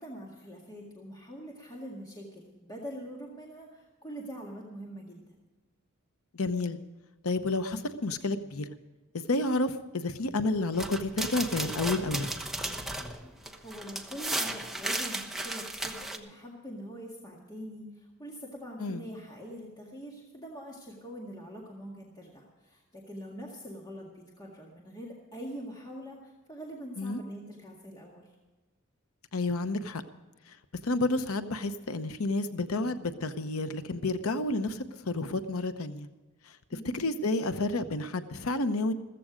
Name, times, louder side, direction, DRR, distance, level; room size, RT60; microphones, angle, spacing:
voice 1, 0.0-5.3 13.6-28.3 36.7-37.0, equal, 20° left, -2 dB, 1.9 m, -44 dB
voice 2, 6.3-6.8 7.2-8.7 9.1-12.3 18.8-19.0 27.0-27.2 29.3-30.0 30.5-30.6 30.8-36.1 36.4-36.6 36.9-38.9, left 2 dB, 90° left, 10 dB, 0.8 m, -30 dB
sound 1, 10.7-16.2, right 1 dB, ahead, 1.1 m, -35 dB
15.0 x 14.5 x 5.1 m, 1.2 s
head